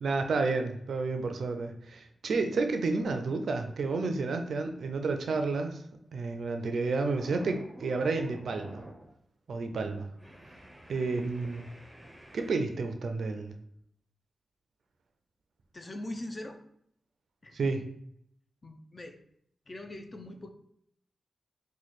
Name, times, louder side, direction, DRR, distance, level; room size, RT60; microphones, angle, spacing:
voice 1, 0.0-5.8 6.1-8.8 9.5-10.1 10.9-11.7 12.3-13.5 17.5-17.8, right 3 dB, 75° right, 6 dB, 0.4 m, -31 dB
sound 1, 6.0-6.4 6.7-9.2 9.5-9.7 10.2-12.5, equal, 10° right, 0.6 m, -50 dB
voice 2, 15.7-16.6 17.4-17.6 18.6-19.2 19.7-20.5, left 1 dB, 35° left, 6 dB, 0.4 m, -41 dB
3.1 x 2.2 x 4.1 m, 0.71 s
cardioid pair, 65°, 0 cm